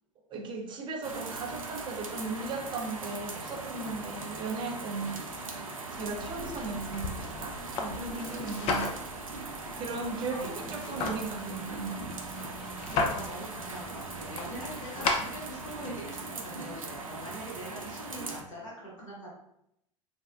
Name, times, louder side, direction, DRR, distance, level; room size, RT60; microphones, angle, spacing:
voice 1, 0.3-8.9 9.7-12.0, right 3 dB, 30° right, 3 dB, 0.6 m, -37 dB
sound 1, 1.0-18.4, right 3 dB, 80° right, 0.4 m, -40 dB
sound 2, 2.5-18.6, right 1 dB, 50° right, 1.0 m, -51 dB
sound 3, 6.0-15.9, left 3 dB, 35° left, 0.5 m, -36 dB
voice 2, 12.8-19.3, right 1 dB, 75° left, -6 dB, 1.3 m, -43 dB
3.3 x 2.1 x 2.4 m, 0.77 s
figure-of-eight pair, 80°, 17 cm